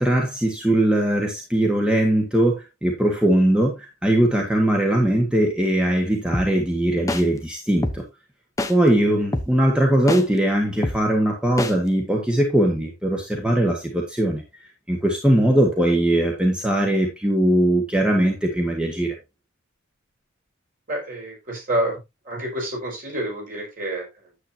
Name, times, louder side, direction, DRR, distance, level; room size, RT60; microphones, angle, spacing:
voice 1, 0.0-8.0 8.7-14.4 14.9-19.1, right 1 dB, 5° right, 0 dB, 1.5 m, -20 dB
sound 1, 6.3-6.5 7.1-7.2 7.8-8.0 8.6-8.7 9.3-9.5 10.1-10.2 10.8-11.0 11.6-11.7, left 1 dB, 15° left, 0.9 m, -24 dB
voice 2, 20.9-22.0 22.3-24.1, right 1 dB, 45° right, -1 dB, 5.2 m, -28 dB
9.9 x 7.9 x 2.8 m, 0.22 s
head